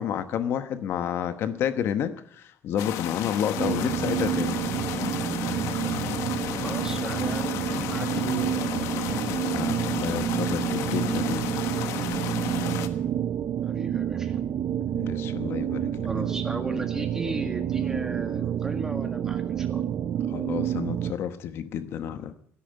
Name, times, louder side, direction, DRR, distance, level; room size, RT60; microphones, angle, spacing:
voice 1, 0.0-4.5 7.7-7.9 8.2-8.5 9.3-11.5 14.9-16.3 20.3-22.3, left 9 dB, 55° left, 1.0 m, -30 dB
sound 1, 2.8-12.9, left 11 dB, 85° left, 1.3 m, -33 dB
sound 2, 3.6-21.1, right 10 dB, 45° right, 0.6 m, -29 dB
voice 2, 6.6-8.7 13.6-14.4 16.0-19.9, right 2 dB, 10° right, 1.7 m, -36 dB
12.5 x 11.0 x 8.8 m
cardioid pair, 160°, 5 cm